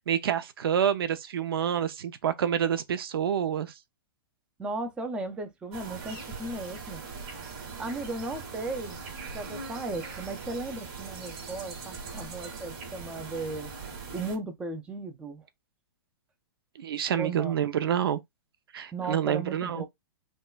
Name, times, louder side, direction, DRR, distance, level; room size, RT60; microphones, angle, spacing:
voice 1, 0.1-3.7 16.8-18.2 18.7-19.8, right 9 dB, 80° right, 0.6 m, -28 dB
voice 2, 4.6-7.0 7.8-9.0 9.3-13.7 14.1-15.4 17.1-17.6 18.9-19.8, right 2 dB, 10° right, 0.4 m, -36 dB
sound 1, 5.7-14.4, right 4 dB, 40° right, 1.8 m, -41 dB
5.3 x 2.2 x 2.3 m
hypercardioid pair, 160°, 12 cm